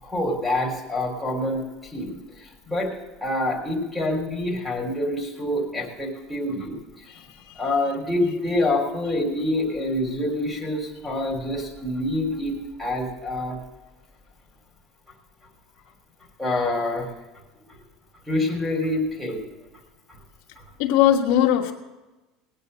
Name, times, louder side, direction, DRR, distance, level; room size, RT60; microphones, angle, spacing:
voice 1, 0.0-2.9 3.2-7.1 7.5-13.6 16.4-17.1 17.7-17.8 18.3-19.5 20.1-20.2 20.6-20.7, left 1 dB, 5° right, -3 dB, 3.3 m, -26 dB
voice 2, 7.1-7.6 20.8-21.7, left 10 dB, 65° left, 1 dB, 1.4 m, -21 dB
18.5 x 9.4 x 6.7 m, 1.1 s
cardioid pair, 170°, 0 cm